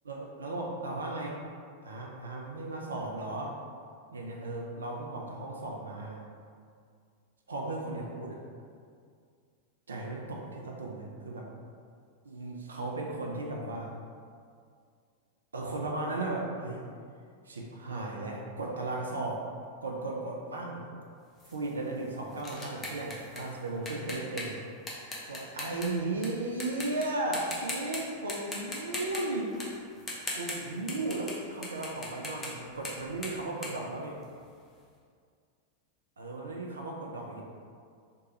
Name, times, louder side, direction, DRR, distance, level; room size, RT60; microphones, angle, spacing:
voice 1, 0.0-1.4 1.8-3.6 4.1-6.2 7.5-8.4 9.9-11.5 12.2-13.9 15.5-16.8 17.5-19.5 19.8-20.8 21.5-24.6 25.3-29.6 30.4-34.2 36.2-37.4, right 2 dB, 70° right, -1 dB, 0.3 m, -35 dB
sound 1, 21.4-26.3 26.6-27.1 27.3-28.0 28.3-31.4 31.6-34.6, left 2 dB, 15° left, 0.6 m, -40 dB
3.0 x 2.2 x 2.9 m, 2.2 s
figure-of-eight pair, 90°, 0 cm